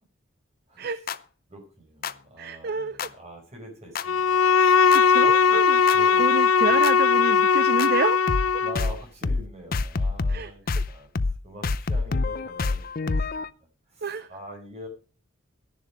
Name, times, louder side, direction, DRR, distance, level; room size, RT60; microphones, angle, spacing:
sound 1, 1.1-1.2 2.0-2.1 3.0-3.1 3.9-4.0 4.9-5.0 5.9-6.0 6.8-6.9 7.8-7.9 8.3-8.5 8.7-9.0 9.2-9.4 9.7-10.4 10.7-10.9 11.1-11.4 11.6-13.5, left 3 dB, 45° left, 0.5 m, -26 dB
voice 1, 1.5-6.5 8.6-13.5 13.9-14.9, equal, 30° right, 2 dB, 4.9 m, -44 dB
voice 2, 2.4-3.1 4.6-5.8 6.2-8.2 8.5-8.6 10.3-10.5 14.0-14.3, right 4 dB, 50° right, 14 dB, 0.6 m, -29 dB
Bowed string instrument, 4.0-8.8, left 6 dB, 80° left, 0.7 m, -19 dB
11.5 x 10.5 x 4.8 m, 0.35 s
head